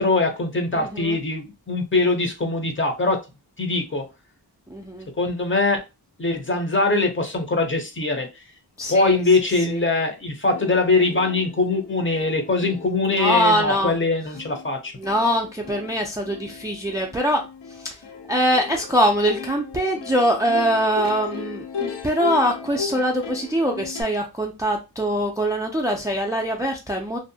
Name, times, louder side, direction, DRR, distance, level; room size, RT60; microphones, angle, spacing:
voice 1, 0.0-3.2 3.6-4.1 5.2-5.8 6.2-8.3 8.9-14.9, left 3 dB, 30° left, 0.6 m, -22 dB
voice 2, 0.7-1.2 4.7-5.1 8.8-9.2 9.7-9.8 13.1-14.0 15.0-17.4 17.8-18.0 18.3-27.2, equal, 10° right, 0.4 m, -23 dB
Plucked string instrument, 10.1-10.2 10.5-24.0, left 6 dB, 80° left, 0.6 m, -36 dB
2.6 x 2.0 x 2.6 m
wide cardioid pair, 85°, 41 cm